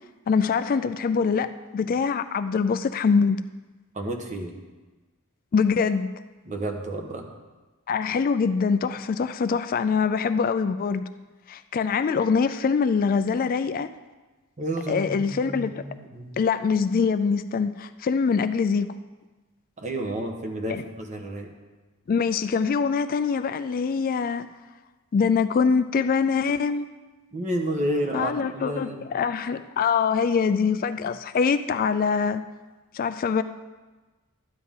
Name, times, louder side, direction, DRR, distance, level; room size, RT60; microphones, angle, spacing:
voice 1, 0.3-3.4 5.5-6.1 7.9-11.1 11.5-13.9 14.9-15.8 16.4-18.9 20.7-20.8 22.1-24.5 25.1-26.9 28.1-32.4 32.9-33.4, left 5 dB, 40° left, 11 dB, 0.3 m, -24 dB
voice 2, 3.9-4.5 6.5-7.2 14.6-16.3 19.8-21.5 27.3-29.0, right 1 dB, 35° right, 2 dB, 1.3 m, -30 dB
12.5 x 9.5 x 3.7 m, 1.2 s
head